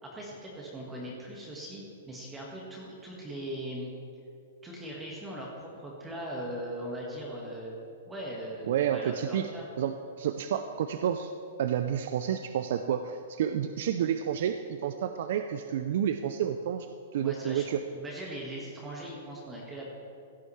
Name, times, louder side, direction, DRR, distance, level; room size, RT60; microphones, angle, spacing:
voice 1, 0.0-3.9 4.6-7.8 8.1-9.7 17.2-19.9, right 1 dB, 10° right, -4 dB, 1.5 m, -40 dB
voice 2, 8.6-9.5 9.8-11.3 11.6-16.9 17.1-17.8, right 9 dB, 60° right, 8 dB, 0.4 m, -30 dB
16.0 x 9.2 x 3.2 m, 2.5 s
hypercardioid pair, 155°, 0 cm